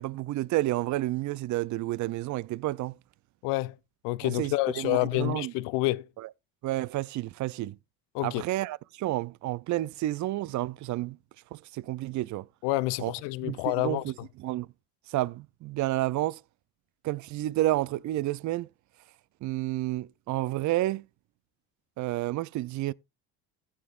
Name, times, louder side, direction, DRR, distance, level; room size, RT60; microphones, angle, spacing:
voice 1, 0.0-3.0 4.2-5.5 6.2-6.3 6.6-7.8 8.2-11.2 11.5-12.5 13.0-13.1 13.4-14.1 14.4-14.7 15.1-16.4 17.0-18.7 19.4-21.0 22.0-22.9, right 16 dB, 45° right, 0.4 m, -30 dB
voice 2, 3.4-3.8 4.0-6.1 8.1-8.4 12.6-14.0, left 20 dB, 80° left, 0.7 m, -28 dB
14.5 x 8.7 x 2.4 m
supercardioid pair, 95°, 41 cm